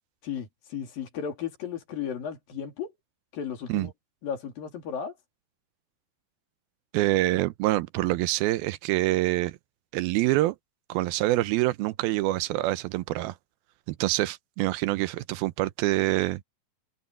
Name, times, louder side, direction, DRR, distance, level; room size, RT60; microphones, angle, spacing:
voice 1, 0.2-2.9 3.3-3.9 4.2-5.2, left 8 dB, 65° left, 4.6 m, -34 dB
voice 2, 6.9-9.6 9.9-10.6 10.9-13.4 13.9-16.4, right 17 dB, 85° right, 2.5 m, -26 dB
omnidirectional pair, 4.3 m